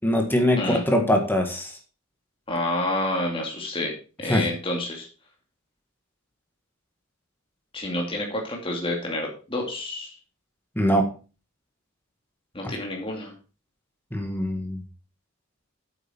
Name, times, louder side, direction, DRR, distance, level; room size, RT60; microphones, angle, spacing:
voice 1, 0.0-1.8 4.3-4.4 10.7-11.1 14.1-14.8, equal, 10° left, 3 dB, 1.7 m, -22 dB
voice 2, 2.5-5.1 7.7-10.1 12.5-13.3, left 1 dB, 25° left, -1 dB, 2.7 m, -29 dB
9.1 x 8.5 x 4.5 m, 0.34 s
head